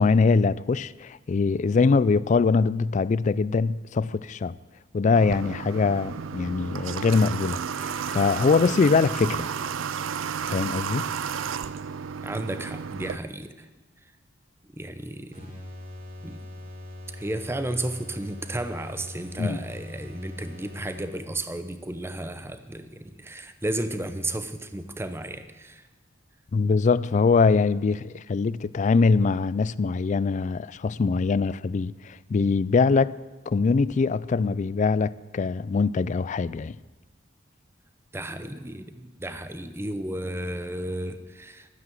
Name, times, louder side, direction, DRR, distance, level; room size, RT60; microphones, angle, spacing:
voice 1, 0.0-4.6 4.9-9.5 10.5-11.1 19.4-19.6 26.5-33.1 33.5-36.7, left 4 dB, 40° left, 0.3 m, -23 dB
Water / Water tap faucet, 5.1-13.2, right 7 dB, 80° right, 0.5 m, -32 dB
voice 2, 12.2-13.7 14.7-15.5 16.2-16.4 17.2-25.8 38.1-41.7, right 1 dB, 15° right, 0.7 m, -33 dB
sound 1, 15.3-21.4, left 1 dB, 45° right, 3.2 m, -41 dB
12.5 x 9.6 x 7.7 m
head